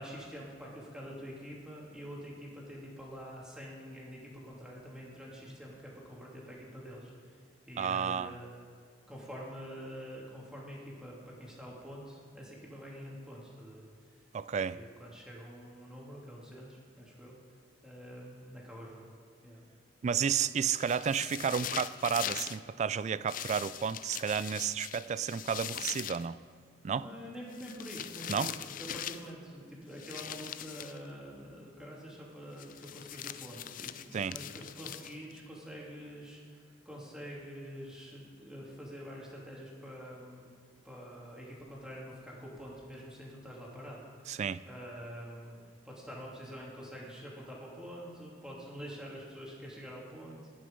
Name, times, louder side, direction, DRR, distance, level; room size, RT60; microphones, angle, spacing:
voice 1, 0.0-8.5 9.1-13.8 14.7-17.4 17.8-19.1 19.4-19.6 26.8-40.5 40.8-45.6 45.8-50.5, equal, 5° right, -4 dB, 2.7 m, -46 dB
voice 2, 7.8-8.3 14.3-14.8 20.0-26.4 26.8-27.1 28.3-28.5 34.1-34.4 44.3-44.6, right 7 dB, 40° right, 17 dB, 0.3 m, -32 dB
sound 1, 20.7-22.6 23.3-26.3 27.5-29.3 30.0-31.0 32.6-35.4, left 10 dB, 45° left, 0.4 m, -41 dB
19.0 x 6.4 x 5.3 m, 2.1 s
head